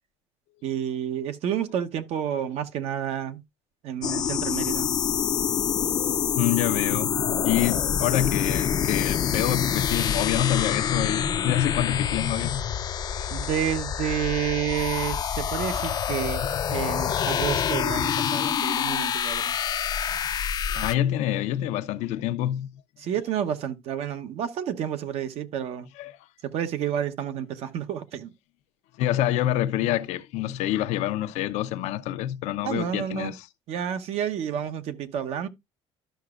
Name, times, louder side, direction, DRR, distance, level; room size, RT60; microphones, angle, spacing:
voice 1, 0.6-3.4 3.8-4.9 13.3-16.4 16.7-19.5 23.0-25.9 26.4-28.3 32.6-33.3 33.7-35.5, right 9 dB, 60° right, 1.0 m, -30 dB
sound 1, 4.0-20.9, left 8 dB, 35° left, 0.5 m, -26 dB
voice 2, 6.4-7.1 7.4-12.6 15.6-15.9 16.4-16.5 20.1-20.2 20.7-22.7 26.0-26.1 29.0-33.5, left 12 dB, 75° left, 0.7 m, -27 dB
13.0 x 5.9 x 2.5 m
cardioid pair, 135°, 12 cm